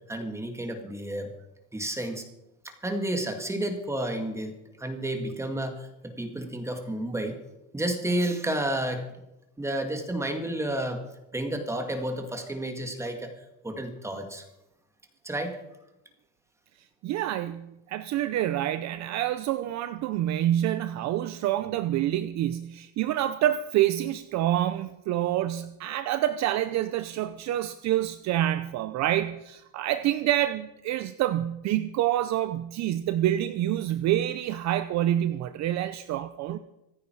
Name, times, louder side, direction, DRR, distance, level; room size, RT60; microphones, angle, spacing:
voice 1, 0.1-1.3 1.7-2.2 2.6-4.5 4.8-7.4 7.7-9.0 9.6-11.0 11.3-13.3 13.6-14.5 15.2-15.6, right 1 dB, 5° right, 5 dB, 2.0 m, -31 dB
voice 2, 17.0-36.6, right 12 dB, 45° right, 13 dB, 0.6 m, -27 dB
25.5 x 9.5 x 4.6 m, 0.92 s
cardioid pair, 145°, 38 cm